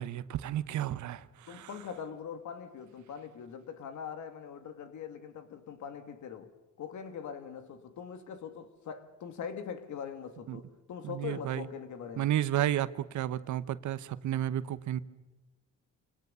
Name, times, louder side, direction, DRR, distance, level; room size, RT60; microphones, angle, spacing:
voice 1, 0.0-1.7 10.5-10.6 11.0-11.7 12.2-15.0, right 12 dB, 70° right, 1.0 m, -32 dB
voice 2, 1.5-6.5 6.8-12.3, left 7 dB, 75° left, 2.2 m, -42 dB
27.0 x 19.0 x 6.9 m
cardioid pair, 90°, 30 cm